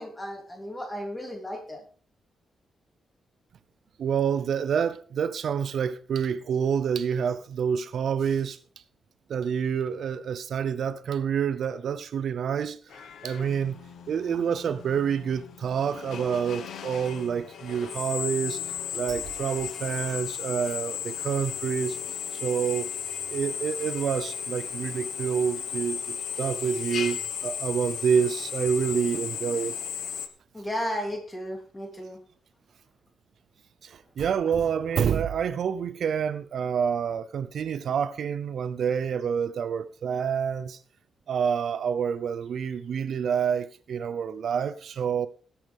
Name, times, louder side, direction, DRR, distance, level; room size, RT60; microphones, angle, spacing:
voice 1, 0.0-1.8 30.5-32.2, equal, 15° left, 3.4 m, -34 dB
voice 2, 4.0-8.6 9.3-12.8 13.2-13.8 14.1-22.0 22.3-22.9 23.3-29.7 33.8-40.8 41.3-45.3, right 7 dB, 60° right, 0.6 m, -28 dB
Drill, 12.9-30.3, left 8 dB, 75° left, 1.4 m, -35 dB
18.5 x 8.6 x 3.6 m
wide cardioid pair, 160°, 0 cm